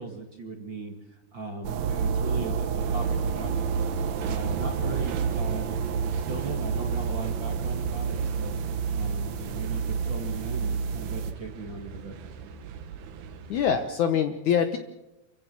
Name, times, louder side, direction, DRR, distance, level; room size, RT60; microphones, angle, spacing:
voice 1, 0.0-3.6 4.2-5.8 6.1-12.2, right 4 dB, 40° right, 4 dB, 2.0 m, -38 dB
sound 1, 1.6-11.3, right 6 dB, 65° right, 1.9 m, -29 dB
sound 2, 2.8-13.9, right 6 dB, 90° right, 3.7 m, -41 dB
voice 2, 13.5-14.8, left 8 dB, 65° left, 8 dB, 2.0 m, -24 dB
28.5 x 15.5 x 7.3 m, 0.95 s
omnidirectional pair, 4.5 m